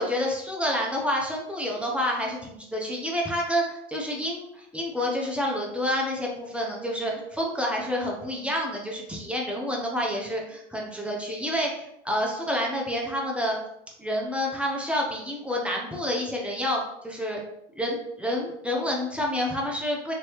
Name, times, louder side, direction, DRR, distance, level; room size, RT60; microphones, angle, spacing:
voice 1, 0.0-13.6 14.0-17.4 17.8-20.1, equal, 5° right, -2 dB, 0.6 m, -28 dB
3.2 x 2.9 x 2.9 m, 0.79 s
hypercardioid pair, 105°, 36 cm